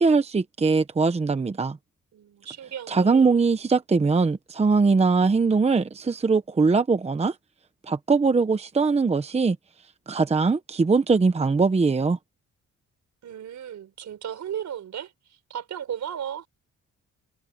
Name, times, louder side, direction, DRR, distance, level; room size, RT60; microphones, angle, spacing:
voice 1, 0.0-1.8 2.9-7.3 7.8-9.6 10.1-12.2, right 4 dB, 20° right, 0.9 m, -21 dB
voice 2, 2.1-3.3 13.2-16.5, right 9 dB, 65° right, 4.9 m, -35 dB
cardioid pair, 140°, 31 cm